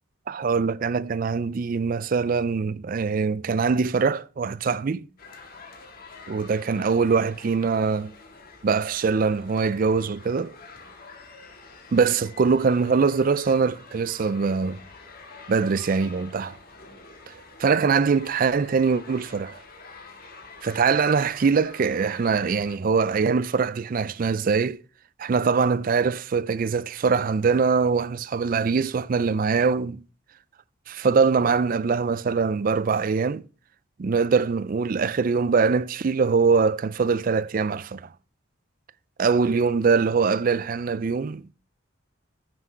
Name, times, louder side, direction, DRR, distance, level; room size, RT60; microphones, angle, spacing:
voice 1, 0.3-5.1 6.3-8.1 8.6-10.6 11.9-14.8 15.5-16.6 17.3-17.4 17.6-19.6 20.6-24.8 25.2-30.0 30.9-33.4 34.0-38.1 39.2-41.5, right 5 dB, 40° right, 0.3 m, -23 dB
sound 1, 5.2-22.8, left 3 dB, 45° left, 1.9 m, -47 dB
9.6 x 6.1 x 4.9 m
head